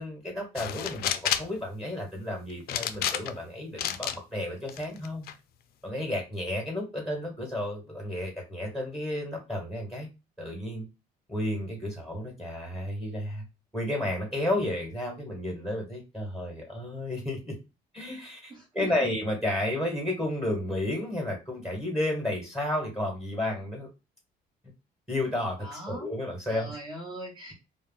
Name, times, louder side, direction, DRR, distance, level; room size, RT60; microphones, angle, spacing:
voice 1, 0.0-5.3 5.8-10.1 10.4-10.8 11.3-13.4 13.7-17.6 17.9-23.9 25.1-26.8, left 1 dB, ahead, -1 dB, 1.2 m, -32 dB
sound 1, 0.6-1.6 2.7-3.4 3.8-4.2 4.7-5.3, left 10 dB, 65° left, 0.4 m, -30 dB
voice 2, 18.5-19.0 25.6-26.1 26.5-27.5, right 2 dB, 30° right, -1 dB, 1.0 m, -40 dB
2.3 x 2.0 x 3.8 m, 0.28 s
cardioid pair, 110°, 17 cm